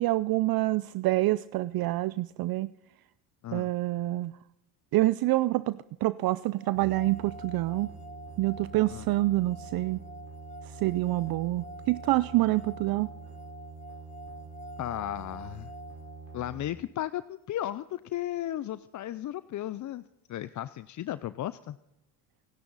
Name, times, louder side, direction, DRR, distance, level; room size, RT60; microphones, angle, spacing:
voice 1, 0.0-2.7 3.5-4.3 4.9-7.9 8.4-10.0 10.6-13.1, right 18 dB, 55° right, 16 dB, 0.5 m, -27 dB
sound 1, 6.6-16.7, equal, 15° left, 1.2 m, -47 dB
sound 2, 6.7-16.7, right 4 dB, 70° right, 5.4 m, -46 dB
voice 2, 14.8-15.7 16.3-20.0 20.3-21.8, left 12 dB, 40° left, 15 dB, 0.5 m, -35 dB
27.5 x 10.5 x 4.0 m, 0.90 s
supercardioid pair, 95°, 45 cm